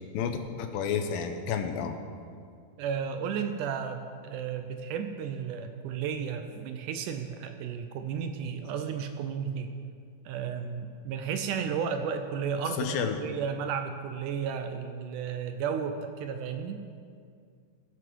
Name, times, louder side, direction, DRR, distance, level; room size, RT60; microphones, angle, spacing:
voice 1, 0.1-2.0 12.8-13.2, left 7 dB, 85° left, 7 dB, 2.6 m, -30 dB
voice 2, 2.8-9.7 10.3-16.8, right 7 dB, 80° right, 7 dB, 2.0 m, -33 dB
18.0 x 8.1 x 4.6 m, 2.2 s
omnidirectional pair, 4.0 m